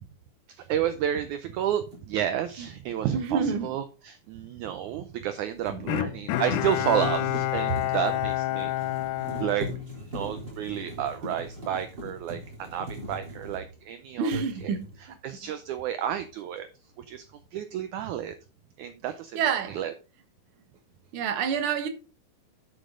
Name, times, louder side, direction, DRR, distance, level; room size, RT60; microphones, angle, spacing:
voice 1, 0.5-9.1 9.4-9.7 10.0-14.7 15.2-16.7 17.0-17.3 17.5-18.4 18.8-19.4 19.7-19.9, right 10 dB, 75° right, 1.8 m, -31 dB
sound 1, 1.9-2.1 5.1-13.9 14.2-15.1, right 1 dB, 30° right, 4.3 m, -40 dB
voice 2, 3.1-3.7 5.7-6.1 7.7-7.8 14.2-14.9 15.4-15.5 19.3-19.8 21.1-21.9, right 6 dB, 55° right, 1.7 m, -28 dB
Bowed string instrument, 5.9-10.4 10.8-10.9, left 15 dB, 80° left, 1.8 m, -29 dB
11.5 x 6.9 x 3.8 m
omnidirectional pair, 4.1 m